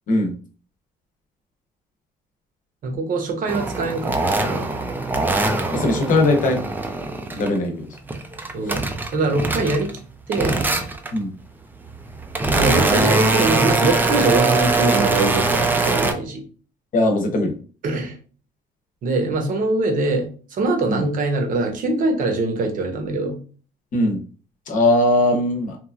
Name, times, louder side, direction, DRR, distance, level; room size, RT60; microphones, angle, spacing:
voice 1, 2.8-4.7 8.5-8.8 9.1-10.0 10.3-10.6 12.5-16.4 17.8-18.2 19.0-23.4, right 2 dB, 55° right, 3 dB, 0.8 m, -23 dB
sound 1, 3.5-7.6 7.9-10.0 10.3-11.2 11.8-16.1, right 3 dB, 10° right, 0.4 m, -22 dB
voice 2, 5.7-6.6 7.3-7.9 8.7-8.8 11.1-11.3 16.9-17.5 20.9-21.0 23.9-24.2 24.7-25.8, left 2 dB, 50° left, 3 dB, 0.8 m, -19 dB
3.0 x 2.3 x 2.4 m, 0.39 s
cardioid pair, 110°, 17 cm